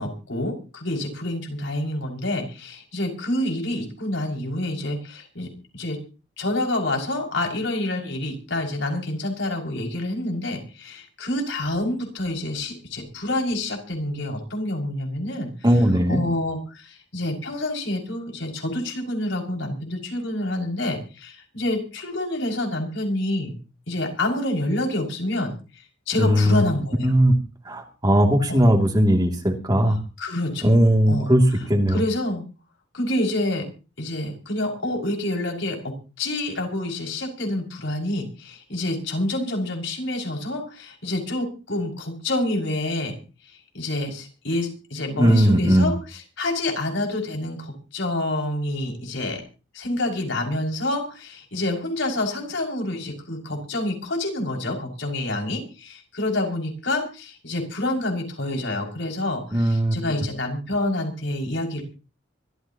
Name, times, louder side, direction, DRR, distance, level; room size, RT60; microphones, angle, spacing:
voice 1, 0.0-5.5 5.7-6.0 6.4-15.5 16.1-23.6 23.9-27.1 28.5-28.7 30.2-30.8 31.1-31.3 31.9-32.4 32.9-33.6 34.0-43.2 43.7-49.4 49.7-61.8, left 1 dB, 70° left, 2 dB, 6.1 m, -27 dB
voice 2, 15.6-16.2 26.2-26.6 27.0-27.3 27.6-30.0 30.6-32.0 45.2-45.9 59.5-60.0, equal, 20° right, 3 dB, 2.6 m, -18 dB
25.0 x 14.5 x 2.9 m, 0.34 s
head